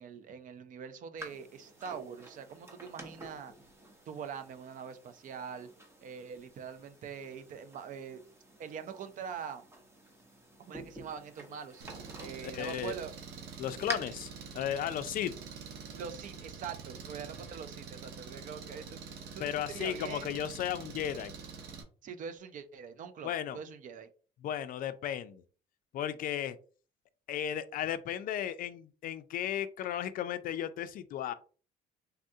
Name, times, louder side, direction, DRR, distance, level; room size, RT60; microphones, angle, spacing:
voice 1, 0.0-3.5 4.1-5.7 6.0-8.2 8.6-9.7 10.6-11.8 12.2-13.1 16.0-19.0 19.3-20.3 22.0-24.1, right 7 dB, 50° right, 10 dB, 0.5 m, -43 dB
sound 1, 1.2-13.9, equal, 15° right, 0.8 m, -49 dB
Engine, 11.8-21.8, right 6 dB, 80° right, 0.7 m, -46 dB
voice 2, 12.4-13.0 13.6-15.3 19.4-21.3 23.2-23.6 24.4-25.4 25.9-26.6 27.3-31.3, left 10 dB, 55° left, 12 dB, 0.4 m, -35 dB
3.5 x 2.3 x 2.6 m, 0.38 s
cardioid pair, 110°, 17 cm